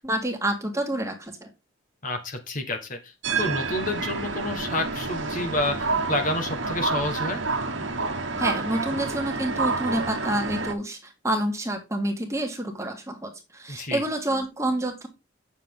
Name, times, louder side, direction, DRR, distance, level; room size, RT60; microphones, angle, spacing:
voice 1, 0.0-1.5 8.4-11.0 11.2-15.1, right 1 dB, 15° right, 3 dB, 1.9 m, -28 dB
voice 2, 2.0-7.4 13.7-14.0, left 1 dB, 40° left, 5 dB, 1.5 m, -29 dB
sound 1, 3.2-10.7, right 3 dB, 65° right, 1.4 m, -29 dB
9.1 x 7.2 x 3.8 m, 0.25 s
head